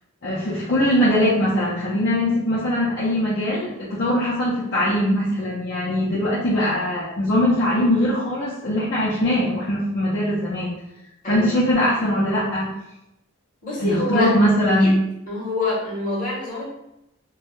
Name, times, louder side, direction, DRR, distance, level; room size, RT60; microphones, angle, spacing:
voice 1, 0.2-10.7 11.3-12.7 13.8-15.0, left 1 dB, 55° left, -9 dB, 0.5 m, -21 dB
voice 2, 11.2-11.6 13.6-14.3 14.8-14.9 15.3-16.7, left 2 dB, 40° left, -6 dB, 0.9 m, -26 dB
2.2 x 2.0 x 3.0 m, 0.87 s
head